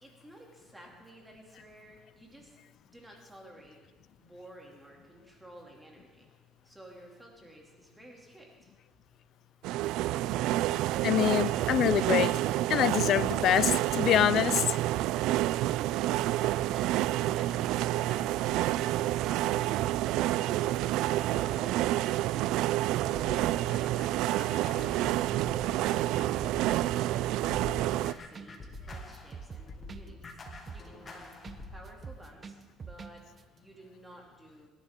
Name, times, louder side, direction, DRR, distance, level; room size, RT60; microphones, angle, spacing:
voice 1, 0.0-2.6 2.9-3.8 4.2-6.3 6.6-8.7 26.8-27.4 27.7-30.4 30.7-31.3 31.7-33.2 33.5-34.7, right 1 dB, 10° right, 2.6 m, -53 dB
sound 1, 9.6-28.1, right 15 dB, 80° right, 0.3 m, -28 dB
voice 2, 11.0-12.4 12.7-14.8, left 11 dB, 65° left, 0.4 m, -25 dB
sound 2, 23.1-27.1 27.5-31.9, left 3 dB, 35° left, 2.4 m, -46 dB
sound 3, 28.0-28.1 28.3-28.5 28.7-31.6 31.9-33.1 33.4-33.5, right 5 dB, 35° right, 0.9 m, -44 dB
26.0 x 11.5 x 3.7 m
cardioid pair, 105°, 0 cm